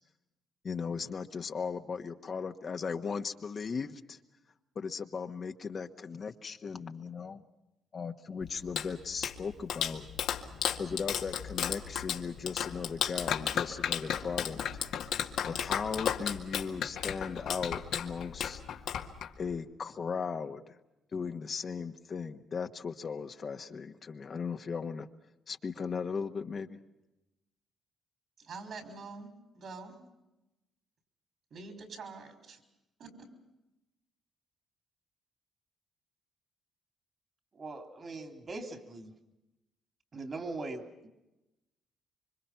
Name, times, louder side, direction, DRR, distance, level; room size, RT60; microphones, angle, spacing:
voice 1, 0.6-4.2 4.7-7.4 7.9-10.1 10.8-14.6 15.5-18.6 19.4-20.6 21.1-25.1 25.5-26.8, left 5 dB, 45° left, 6 dB, 1.4 m, -37 dB
Clapping, 8.4-19.6, left 9 dB, 80° left, 2.0 m, -34 dB
voice 2, 28.4-30.0 31.5-32.6 33.0-33.3, right 4 dB, 60° right, 7 dB, 5.8 m, -46 dB
voice 3, 37.5-39.1 40.1-41.1, right 3 dB, 40° right, 7 dB, 3.1 m, -41 dB
26.5 x 25.0 x 5.9 m, 0.95 s
cardioid pair, 90°, 0 cm